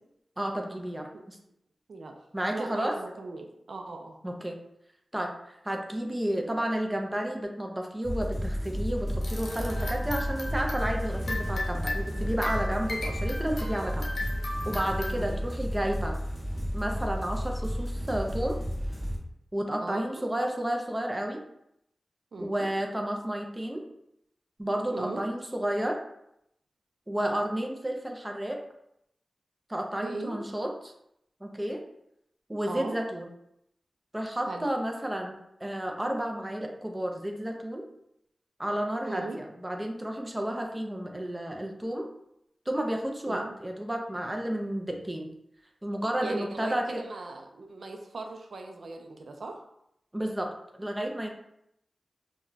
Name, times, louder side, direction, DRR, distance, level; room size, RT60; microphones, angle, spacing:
voice 1, 0.4-1.4 2.3-3.0 4.2-4.6 5.1-14.1 14.6-16.2 16.7-18.6 19.5-21.4 22.4-23.8 24.6-26.0 27.1-28.6 29.7-30.9 31.4-31.8 32.5-33.3 34.1-35.3 35.6-37.8 38.6-42.1 42.7-45.3 45.8-46.9 50.1-51.3, right 1 dB, 15° right, 2 dB, 0.4 m, -31 dB
voice 2, 2.5-4.2 15.1-15.5 19.8-20.0 22.3-22.7 24.9-25.2 30.0-30.4 32.7-33.0 34.5-34.7 39.0-39.4 43.3-43.6 46.2-49.6, right 3 dB, 75° right, 3 dB, 0.4 m, -38 dB
sound 1, 8.0-19.2, equal, ahead, 0.8 m, -32 dB
sound 2, 9.2-15.1, left 1 dB, 80° left, 0.6 m, -37 dB
2.2 x 2.1 x 3.8 m, 0.77 s
wide cardioid pair, 105°, 0 cm